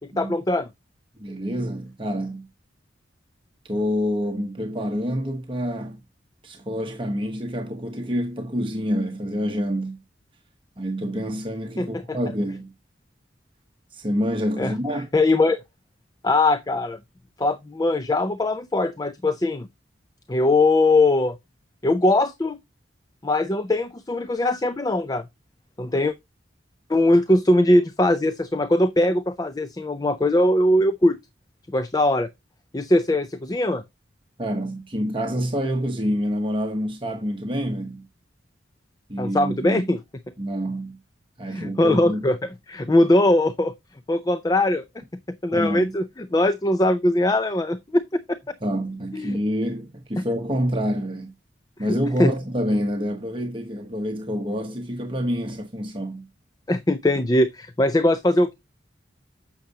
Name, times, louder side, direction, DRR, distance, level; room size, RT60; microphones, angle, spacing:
voice 1, 0.2-0.7 11.8-12.2 14.6-14.7 15.1-15.6 16.2-17.0 17.4-19.7 20.3-21.4 21.8-22.6 23.2-25.2 25.8-26.1 26.9-31.2 31.7-32.3 32.7-33.8 39.2-40.0 41.5-43.7 44.1-44.8 45.3-48.6 49.1-49.4 51.8-52.3 56.7-58.5, left 1 dB, 20° left, 0.4 m, -21 dB
voice 2, 1.2-2.5 3.7-6.0 6.4-10.0 10.8-12.7 13.9-15.1 34.4-38.1 39.1-39.8 40.4-41.0 41.4-42.2 45.5-46.0 48.6-51.3 51.8-56.3, equal, 30° right, 1.1 m, -27 dB
8.8 x 6.5 x 2.8 m
head